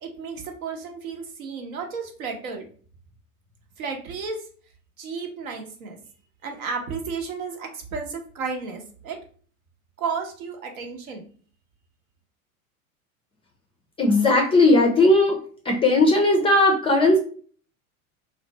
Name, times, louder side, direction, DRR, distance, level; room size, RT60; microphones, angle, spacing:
voice 1, 0.0-2.7 3.8-4.4 5.0-6.0 6.4-9.2 10.0-11.2, right 5 dB, 75° right, 3 dB, 0.8 m, -33 dB
voice 2, 14.0-15.4 15.7-17.2, left 2 dB, 15° left, 1 dB, 0.4 m, -17 dB
2.5 x 2.1 x 2.7 m, 0.44 s
hypercardioid pair, 95°, 42 cm